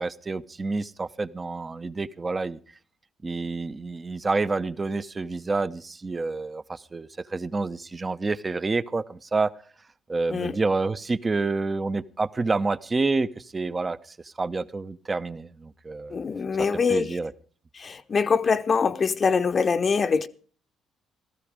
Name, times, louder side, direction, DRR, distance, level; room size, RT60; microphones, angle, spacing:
voice 1, 0.0-2.6 3.2-9.5 10.1-16.2 16.9-17.3, right 3 dB, 25° right, 0.8 m, -28 dB
voice 2, 16.1-17.2 17.7-20.3, left 5 dB, 40° left, 0.7 m, -24 dB
16.0 x 14.5 x 4.9 m
figure-of-eight pair, 45°, 0 cm